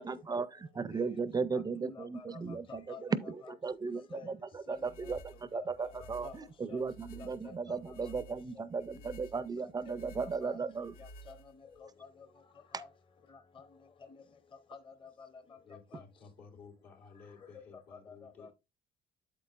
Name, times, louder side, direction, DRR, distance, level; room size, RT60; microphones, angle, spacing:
voice 1, 0.0-10.9 12.7-12.8, right 4 dB, 25° right, 0.4 m, -36 dB
voice 2, 1.5-3.0 3.4-3.5 4.1-4.3 4.7-5.1 5.5-6.4 6.7-6.8 7.1-8.1 8.6-8.7 9.0-9.1 9.9-10.1 10.4-10.6 11.0-11.4 11.8-12.1 12.7-12.9 13.6-13.7 14.7-15.3 15.9-16.0 17.4-17.6 17.9-18.5, left 4 dB, 30° left, 0.8 m, -50 dB
sound 1, 4.7-11.8, right 1 dB, 65° left, 0.7 m, -53 dB
voice 3, 15.6-18.5, left 5 dB, 80° left, 2.6 m, -55 dB
8.3 x 7.5 x 2.4 m
cardioid pair, 110°, 17 cm